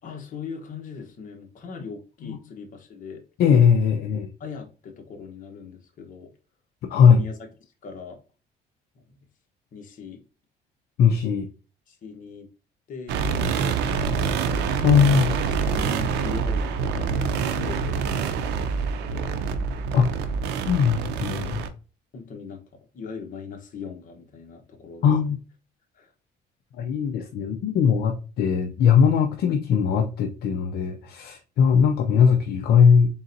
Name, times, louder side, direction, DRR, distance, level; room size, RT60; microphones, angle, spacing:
voice 1, 0.0-3.2 4.4-6.3 7.1-7.5 7.8-8.2 8.9-9.2 9.7-10.2 11.9-12.5 12.9-14.2 15.1-18.0 18.8-19.3 22.1-22.6 22.9-25.3 25.9-26.1, left 5 dB, 50° left, 3 dB, 1.2 m, -40 dB
voice 2, 3.4-4.3 6.9-7.2 11.0-11.5 14.8-15.3 19.9-20.1 20.7-21.7 25.0-25.4 26.8-33.1, left 7 dB, 70° left, 4 dB, 0.6 m, -19 dB
sound 1, 13.1-21.7, right 5 dB, 85° right, 0.6 m, -26 dB
3.9 x 3.9 x 2.7 m, 0.35 s
cardioid pair, 110°, 17 cm